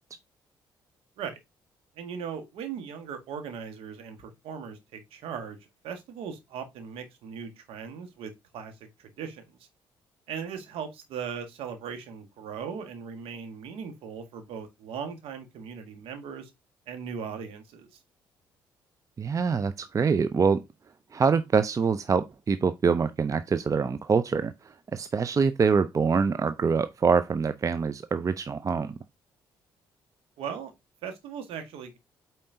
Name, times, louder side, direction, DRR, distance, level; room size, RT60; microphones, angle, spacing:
voice 1, 2.0-5.6 5.8-9.6 10.3-16.5 16.9-17.9 30.4-30.7 31.0-32.0, right 7 dB, 60° right, 1.6 m, -38 dB
voice 2, 19.2-20.6 21.1-24.5 24.9-29.0, right 5 dB, 30° right, 0.6 m, -25 dB
8.5 x 4.3 x 2.8 m
figure-of-eight pair, 45°, 11 cm